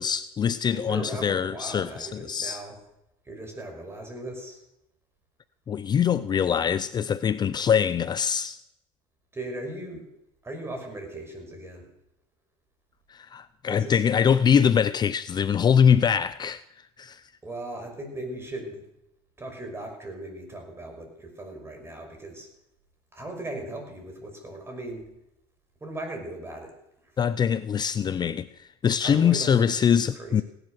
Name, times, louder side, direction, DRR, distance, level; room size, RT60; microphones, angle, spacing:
voice 1, 0.0-2.6 5.7-8.6 13.1-16.6 17.0-17.2 27.2-30.4, left 7 dB, 35° left, 0.6 m, -23 dB
voice 2, 0.7-2.8 3.2-4.6 9.3-10.1 10.4-11.9 13.7-14.0 17.4-18.8 19.4-22.5 23.1-25.0 25.8-26.7 29.0-29.9 30.1-30.4, right 1 dB, 20° right, 5.8 m, -38 dB
17.0 x 11.0 x 6.4 m
supercardioid pair, 90°, 13 cm